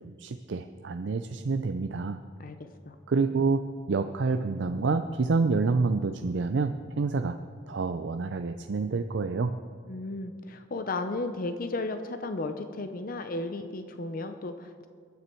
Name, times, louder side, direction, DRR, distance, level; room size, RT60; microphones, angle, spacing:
voice 1, 0.0-2.2 3.1-7.4 7.7-9.6, right 4 dB, 75° right, 8 dB, 0.5 m, -28 dB
voice 2, 2.4-2.9 9.9-14.9, left 2 dB, 50° left, 8 dB, 0.7 m, -34 dB
22.0 x 9.6 x 4.5 m, 2.1 s
head